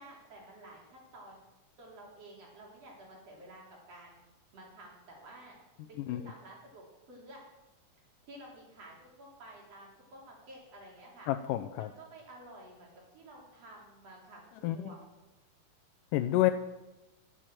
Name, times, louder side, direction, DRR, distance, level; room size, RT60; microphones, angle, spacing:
voice 1, 0.0-1.4 1.8-4.2 4.5-5.6 5.9-7.4 8.3-11.3 11.8-15.0, right 1 dB, 50° right, -2 dB, 4.3 m, -52 dB
voice 2, 11.3-11.9 14.6-14.9 16.1-16.5, left 15 dB, 80° left, 7 dB, 2.1 m, -29 dB
11.0 x 10.0 x 7.6 m, 1.0 s
omnidirectional pair, 3.8 m